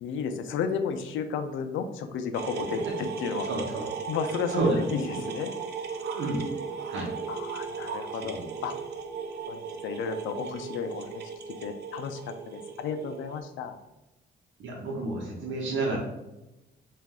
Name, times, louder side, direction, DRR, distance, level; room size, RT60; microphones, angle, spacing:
voice 1, 0.0-3.5 4.1-5.5 7.3-8.7 9.5-11.2 11.6-13.7, left 6 dB, 80° left, 8 dB, 0.5 m, -33 dB
sound 1, 2.3-13.4, right 6 dB, 55° right, 0.5 m, -37 dB
voice 2, 3.5-3.9 4.5-4.8 6.1-6.4 6.9-7.1 8.2-8.5 14.6-16.0, right 2 dB, 75° right, -1 dB, 0.9 m, -30 dB
4.0 x 2.5 x 3.6 m, 0.98 s
cardioid pair, 90°, 20 cm